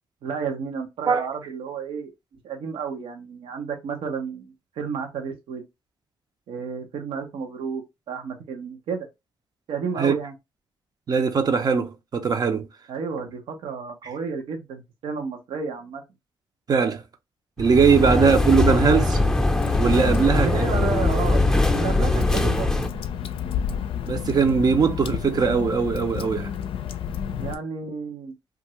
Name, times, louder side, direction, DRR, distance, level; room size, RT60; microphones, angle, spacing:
voice 1, 0.2-2.1 2.4-5.6 6.5-9.1 9.7-10.3 12.9-16.0 20.4-22.7 27.4-28.3, right 5 dB, 75° right, 0.8 m, -31 dB
voice 2, 11.1-12.7 16.7-17.0 17.6-19.2 19.8-20.5 24.0-26.5, right 5 dB, 45° right, 0.6 m, -20 dB
sound 1, 17.6-22.9, left 2 dB, 5° left, 0.6 m, -21 dB
Water / Drip, 19.6-27.5, left 8 dB, 70° left, 0.4 m, -31 dB
2.7 x 2.5 x 3.1 m
cardioid pair, 70°, 9 cm